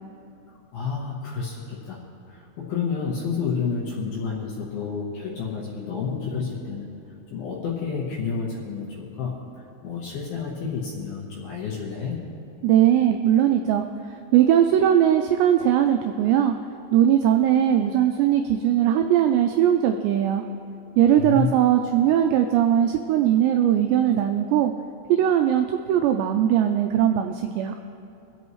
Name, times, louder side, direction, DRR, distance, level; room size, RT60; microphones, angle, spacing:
voice 1, 0.7-2.0 2.3-7.0 7.3-12.2 21.2-21.5, left 5 dB, 70° left, -3 dB, 2.4 m, -30 dB
voice 2, 12.6-16.5 16.9-20.4 21.0-24.7 25.1-27.7, right 10 dB, 85° right, 5 dB, 2.5 m, -20 dB
24.0 x 8.3 x 3.1 m, 2.6 s
omnidirectional pair, 5.4 m